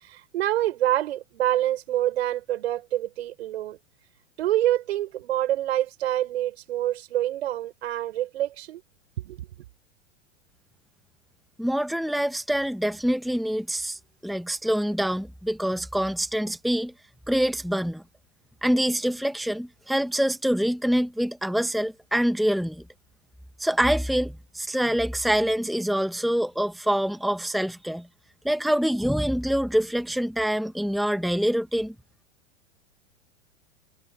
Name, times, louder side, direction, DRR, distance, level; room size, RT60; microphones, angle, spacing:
voice 1, 0.0-3.8 4.4-8.8 9.2-9.5, right 13 dB, 60° right, 5.3 m, -26 dB
voice 2, 11.6-16.9 17.3-18.0 18.6-22.8 23.6-28.1 28.4-31.9, equal, ahead, 1.7 m, -25 dB
figure-of-eight pair, 95°, 35 cm